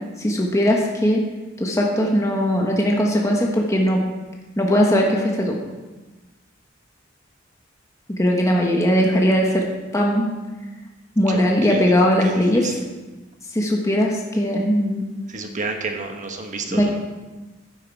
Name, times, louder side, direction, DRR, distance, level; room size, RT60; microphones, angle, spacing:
voice 1, 0.2-1.2 1.6-4.0 4.6-5.6 8.1-9.7 9.9-10.3 11.2-12.7 13.5-15.1 16.7-16.9, equal, 15° left, -1 dB, 1.3 m, -19 dB
voice 2, 15.3-16.9, right 3 dB, 40° right, 3 dB, 1.4 m, -30 dB
11.5 x 9.4 x 4.6 m, 1.2 s
head